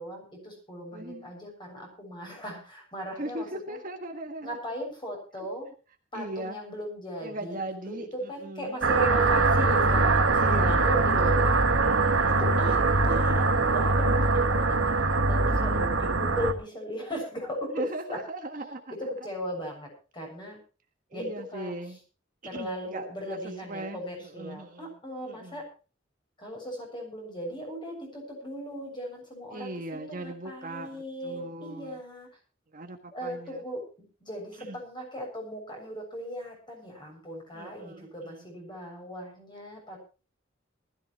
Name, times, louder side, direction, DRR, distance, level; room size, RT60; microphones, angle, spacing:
voice 1, 0.0-3.8 4.4-5.7 6.1-7.6 7.9-8.0 8.3-11.5 12.4-12.8 13.0-18.2 19.2-20.6 21.1-21.2 21.5-21.7 22.4-25.7 26.4-32.3 33.1-33.8 34.2-40.0, equal, 25° left, 1 dB, 7.2 m, -37 dB
voice 2, 0.9-1.3 3.2-4.6 6.1-6.6 7.2-9.5 10.3-11.3 11.8-12.6 17.7-18.9 21.1-22.0 22.5-25.0 25.2-25.6 29.5-32.0 32.7-33.6 34.6-34.8 37.5-38.5, right 1 dB, 45° right, 4 dB, 1.7 m, -39 dB
sound 1, 8.8-16.5, right 3 dB, 85° right, 1.6 m, -23 dB
20.0 x 14.0 x 3.2 m, 0.34 s
head